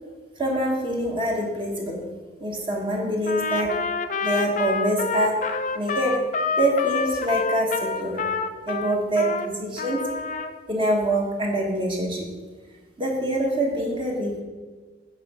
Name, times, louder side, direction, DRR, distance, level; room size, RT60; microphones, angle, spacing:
voice 1, 0.4-2.0 2.4-3.8 4.2-5.5 5.7-6.3 6.6-8.2 8.7-10.2 10.7-12.3 13.0-14.4, right 1 dB, 25° right, -1 dB, 1.2 m, -25 dB
Trumpet, 3.2-9.5 9.8-10.5, left 4 dB, 40° left, 0.4 m, -28 dB
8.8 x 4.5 x 5.4 m, 1.4 s
head